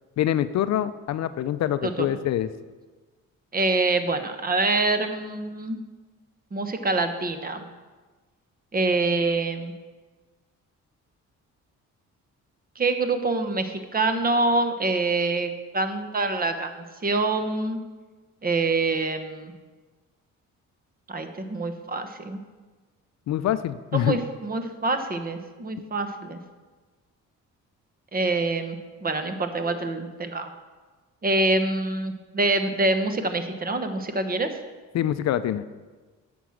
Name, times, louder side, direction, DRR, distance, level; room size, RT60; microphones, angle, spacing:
voice 1, 0.2-2.5 23.3-24.2 34.9-35.6, left 11 dB, 60° left, 13 dB, 0.5 m, -25 dB
voice 2, 3.5-5.8 6.5-7.6 8.7-9.7 12.8-17.8 18.4-19.5 21.1-22.4 23.9-26.4 28.1-30.5 31.2-34.5, right 3 dB, 30° right, 8 dB, 1.0 m, -25 dB
9.0 x 6.1 x 6.4 m, 1.3 s
cardioid pair, 90°, 30 cm